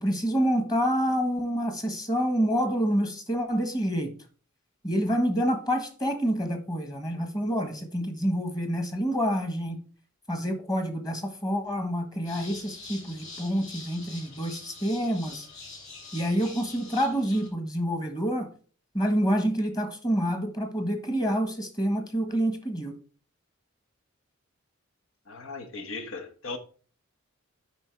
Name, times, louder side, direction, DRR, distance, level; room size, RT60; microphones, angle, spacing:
voice 1, 0.0-4.1 4.8-9.8 10.3-15.5 16.1-18.5 18.9-22.9, equal, 20° left, 1.3 m, -27 dB
sound 1, 12.2-17.5, left 3 dB, 35° left, 3.8 m, -45 dB
voice 2, 25.3-26.6, left 3 dB, 80° left, 1.3 m, -37 dB
8.9 x 5.1 x 4.5 m
head